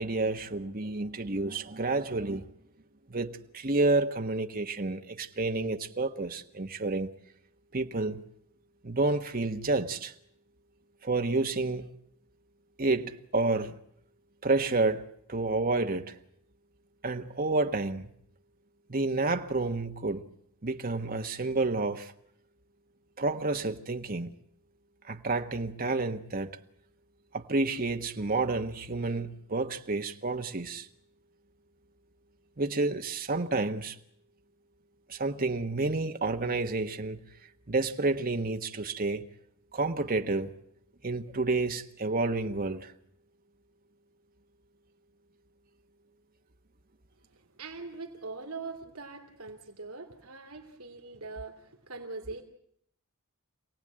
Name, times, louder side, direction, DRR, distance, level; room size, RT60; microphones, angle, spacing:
voice 1, 0.0-2.5 3.1-7.1 7.7-8.2 8.8-10.1 11.0-11.9 12.8-13.8 14.4-16.2 17.0-18.1 18.9-20.3 20.6-22.1 23.2-24.3 25.0-26.6 27.3-30.9 32.6-34.0 35.1-37.2 37.7-39.3 39.7-40.5 41.0-42.9, right 3 dB, 40° right, 1.3 m, -30 dB
voice 2, 47.4-52.4, right 3 dB, 75° right, 2.7 m, -42 dB
27.0 x 18.0 x 8.8 m
head